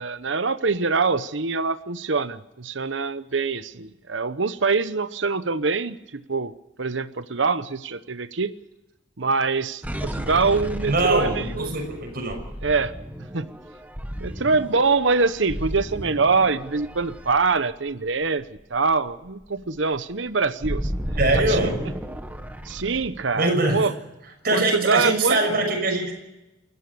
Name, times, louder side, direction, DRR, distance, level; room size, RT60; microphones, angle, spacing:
voice 1, 0.0-6.0 6.3-6.5 6.8-8.5 9.2-11.8 12.6-12.9 13.3-13.5 14.2-18.4 18.7-20.9 21.3-21.6 22.7-23.9 24.5-25.4, right 4 dB, 70° right, 14 dB, 1.0 m, -24 dB
sound 1, 9.8-18.2 18.6-18.8 19.1-23.2, equal, 10° right, 1.7 m, -33 dB
voice 2, 10.9-12.4 21.2-21.8 23.3-23.9 24.4-26.2, right 2 dB, 50° right, 2 dB, 6.3 m, -23 dB
29.5 x 14.0 x 6.9 m, 0.97 s
head